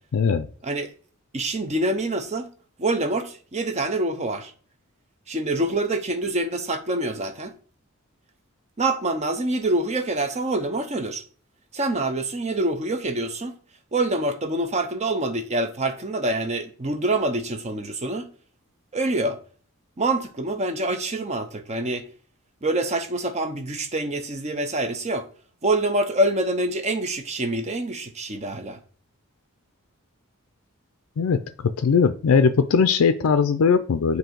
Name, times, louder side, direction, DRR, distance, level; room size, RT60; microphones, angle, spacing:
voice 1, 0.1-0.5 31.2-31.4 31.8-34.2, left 5 dB, 70° left, 0.4 m, -19 dB
voice 2, 1.3-2.5 2.8-4.5 5.3-7.5 8.8-11.2 11.7-13.6 13.9-18.3 18.9-19.4 20.0-22.1 22.6-25.3 25.6-28.8, right 2 dB, 30° right, 0.7 m, -26 dB
7.6 x 2.7 x 4.5 m
head